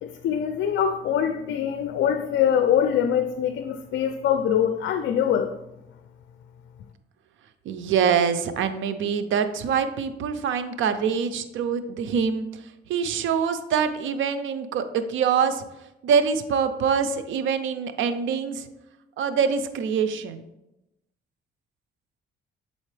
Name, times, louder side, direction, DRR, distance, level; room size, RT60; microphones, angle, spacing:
voice 1, 0.0-5.5, left 9 dB, 70° left, 9 dB, 0.4 m, -23 dB
voice 2, 7.7-12.5 12.9-15.6 16.0-18.6 19.2-20.5, right 6 dB, 75° right, 10 dB, 0.6 m, -24 dB
7.4 x 4.1 x 3.2 m, 0.91 s
cardioid pair, 90°, 20 cm